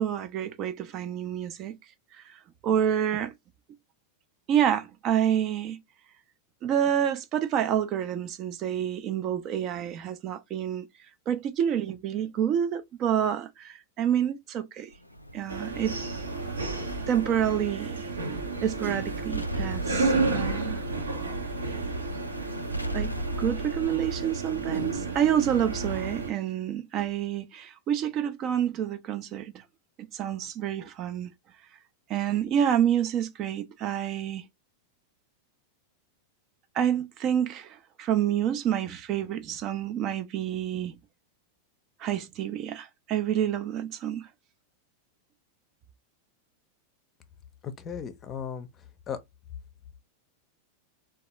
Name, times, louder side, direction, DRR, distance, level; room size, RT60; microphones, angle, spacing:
voice 1, 0.0-1.8 2.1-3.3 4.5-5.8 6.6-10.9 11.3-14.9 15.3-16.0 17.1-18.0 18.6-20.8 22.9-29.6 30.0-31.3 32.1-34.4 36.7-41.0 42.0-44.3, right 9 dB, 35° right, 0.4 m, -28 dB
sound 1, 14.9-26.2, equal, 90° left, 0.4 m, -38 dB
sound 2, 15.5-26.3, right 3 dB, 75° right, 0.7 m, -32 dB
voice 2, 47.6-49.2, left 7 dB, 25° left, 0.5 m, -37 dB
3.6 x 2.3 x 2.9 m
figure-of-eight pair, 90°, 0 cm